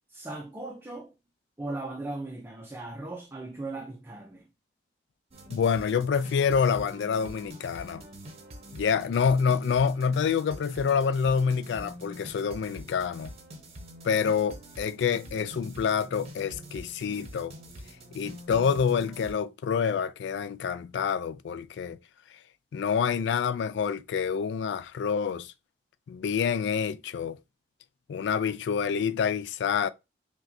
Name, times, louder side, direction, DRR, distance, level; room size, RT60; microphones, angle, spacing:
voice 1, 0.1-1.1 1.6-4.5, right 2 dB, 10° right, 0.4 m, -38 dB
sound 1, 5.3-19.3, right 1 dB, 35° right, 0.8 m, -46 dB
voice 2, 5.5-8.0 8.7-13.3 14.0-17.5 18.1-22.0 22.7-25.5 26.1-27.4 28.1-29.9, left 6 dB, 75° left, 0.3 m, -27 dB
5.7 x 2.2 x 2.6 m
head